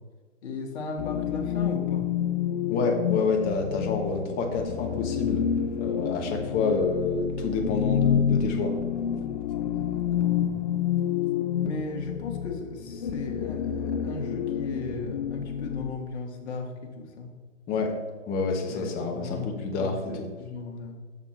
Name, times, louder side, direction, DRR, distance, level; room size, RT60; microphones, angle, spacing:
voice 1, 0.4-2.1 9.6-10.6 11.6-17.3 18.7-20.9, left 3 dB, 60° left, 1 dB, 1.9 m, -36 dB
sound 1, 1.0-15.9, left 9 dB, 40° left, 0.4 m, -28 dB
voice 2, 2.7-5.4 5.8-8.7 17.7-17.9 18.3-20.3, left 4 dB, 25° left, 2 dB, 1.2 m, -28 dB
7.2 x 6.6 x 4.4 m, 1.5 s
hypercardioid pair, 135°, 38 cm